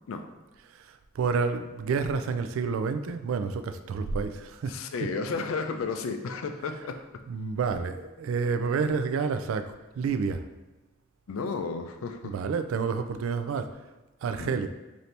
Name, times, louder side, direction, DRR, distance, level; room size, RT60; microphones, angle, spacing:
voice 1, 1.2-4.7 7.3-10.4 12.2-13.7 14.2-14.7, right 5 dB, 80° right, 10 dB, 0.3 m, -29 dB
voice 2, 4.7-7.0 11.3-12.3 14.4-14.6, left 4 dB, 85° left, 7 dB, 0.4 m, -33 dB
4.2 x 2.7 x 3.2 m, 1.1 s
head